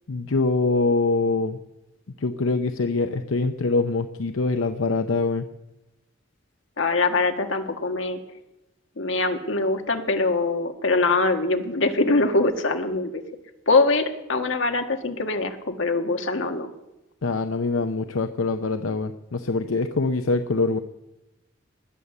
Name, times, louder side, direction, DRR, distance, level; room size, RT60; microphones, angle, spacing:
voice 1, 0.1-1.6 2.2-5.4 17.2-20.8, left 3 dB, 85° left, 8 dB, 0.7 m, -24 dB
voice 2, 6.8-8.2 9.0-13.2 13.7-16.7, left 3 dB, 70° left, 5 dB, 1.5 m, -23 dB
20.0 x 8.1 x 6.9 m, 0.95 s
head